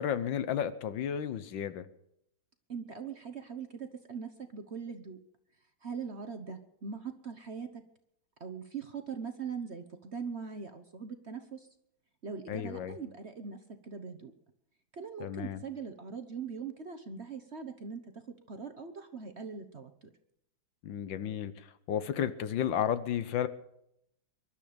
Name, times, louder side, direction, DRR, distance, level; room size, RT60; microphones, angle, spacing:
voice 1, 0.0-1.8 12.5-12.9 15.2-15.6 20.8-21.5 21.9-23.5, left 9 dB, 70° left, 13 dB, 1.6 m, -32 dB
voice 2, 2.7-5.2 5.8-7.7 8.4-11.7 12.2-13.6 13.8-14.3 14.9-18.0 18.5-20.1, right 6 dB, 45° right, 7 dB, 1.0 m, -41 dB
23.5 x 12.0 x 5.2 m, 0.76 s
omnidirectional pair, 2.2 m